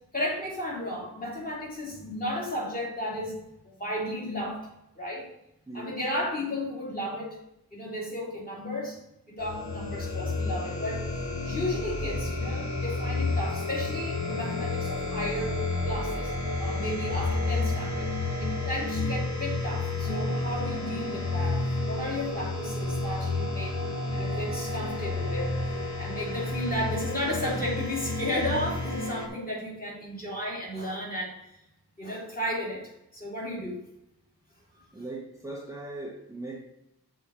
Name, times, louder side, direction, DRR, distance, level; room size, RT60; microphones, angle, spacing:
voice 1, 0.1-4.7 5.0-5.3 5.7-7.4 7.7-9.0 9.3-11.0 11.4-15.6 15.8-18.1 18.4-31.3 32.0-33.8 34.7-34.8, left 1 dB, 20° left, 2.8 m, -34 dB
voice 2, 5.7-6.0 34.9-36.6, right 2 dB, 10° right, 0.7 m, -39 dB
sound 1, 9.4-29.3, left 2 dB, 45° left, 1.2 m, -30 dB
6.5 x 4.1 x 6.1 m
wide cardioid pair, 140°, 39 cm